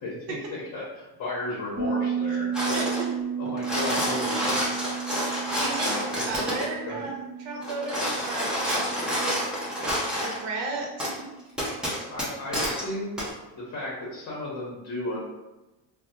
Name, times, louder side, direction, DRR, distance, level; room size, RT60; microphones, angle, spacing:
voice 1, 0.0-2.8 3.4-4.7 5.8-6.4 6.8-7.1 12.1-13.2 13.6-15.2, left 2 dB, 35° left, -6 dB, 0.9 m, -34 dB
Bass guitar, 1.8-11.1, right 7 dB, 30° right, 0.7 m, -34 dB
sound 1, 2.5-3.1 3.5-6.7 7.6-10.4 11.0-11.1 11.6-12.8 13.2-13.3, equal, ahead, 0.4 m, -28 dB
voice 2, 2.7-3.1 5.6-6.0 6.3-9.6 10.2-11.3, right 3 dB, 60° right, 0 dB, 0.9 m, -34 dB
3.3 x 2.1 x 2.8 m, 1.0 s
cardioid pair, 150°, 48 cm